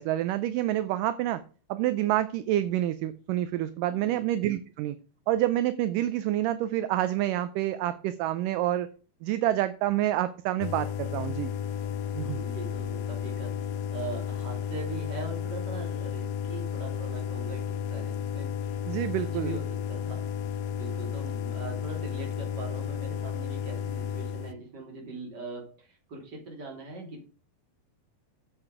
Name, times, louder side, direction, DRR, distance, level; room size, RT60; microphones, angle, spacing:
voice 1, 0.0-1.4 1.7-5.0 5.3-8.9 9.2-11.5 12.1-12.4 18.9-19.5, right 13 dB, 80° right, 12 dB, 2.0 m, -28 dB
voice 2, 3.9-4.2 11.7-18.8 19.2-27.2, right 3 dB, 30° right, 0 dB, 3.4 m, -41 dB
sound 1, 10.6-24.5, left 8 dB, 90° left, 2.6 m, -33 dB
8.9 x 7.7 x 4.8 m, 0.37 s
omnidirectional pair, 4.2 m